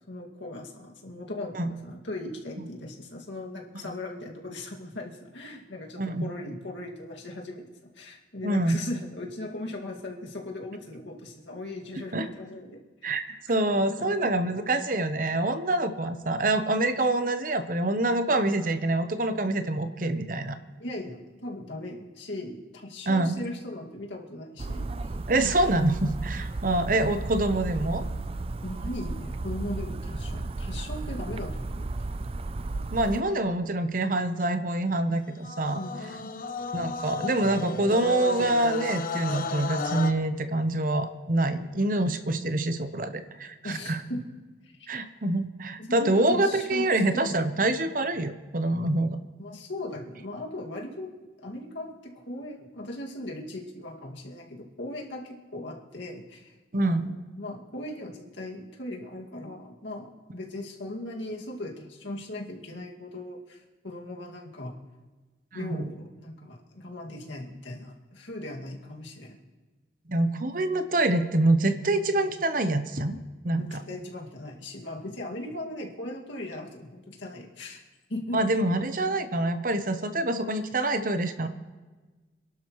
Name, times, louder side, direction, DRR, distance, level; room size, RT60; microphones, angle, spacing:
voice 1, 0.1-7.7 8.0-12.8 13.5-14.3 20.8-24.9 28.6-31.9 32.2-32.3 35.7-36.3 43.6-44.2 44.8-44.9 45.8-47.4 49.4-51.1 51.4-56.5 56.8-64.7 65.5-69.4 70.2-70.4 73.6-77.8 78.1-78.4, left 1 dB, 80° left, 0 dB, 2.1 m, -38 dB
voice 2, 8.4-8.8 12.1-12.3 13.0-13.2 13.5-20.6 23.1-23.4 25.3-28.0 32.9-35.8 36.7-44.0 44.9-49.2 56.7-57.1 65.5-65.9 70.1-73.2 73.4-73.8 78.3-81.5, right 2 dB, 45° right, 9 dB, 0.8 m, -26 dB
sound 1, 24.6-33.2, right 2 dB, 30° right, 0.4 m, -34 dB
sound 2, 35.4-40.1, left 4 dB, 45° left, 0.6 m, -33 dB
27.0 x 11.5 x 3.1 m, 1.3 s
head